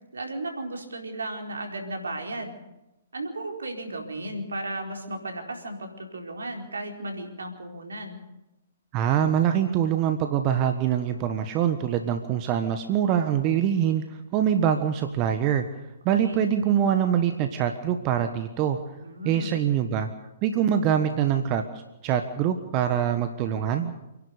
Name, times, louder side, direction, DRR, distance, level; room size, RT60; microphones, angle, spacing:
voice 1, 0.1-2.5 3.1-8.2 16.2-16.4 19.0-19.5, right 2 dB, 75° right, 2 dB, 4.5 m, -35 dB
voice 2, 8.9-15.6 16.0-18.8 19.2-20.1 20.4-21.6 22.0-23.9, right 9 dB, 35° right, 7 dB, 1.4 m, -24 dB
28.0 x 11.5 x 8.3 m, 0.95 s
figure-of-eight pair, 120°, 0 cm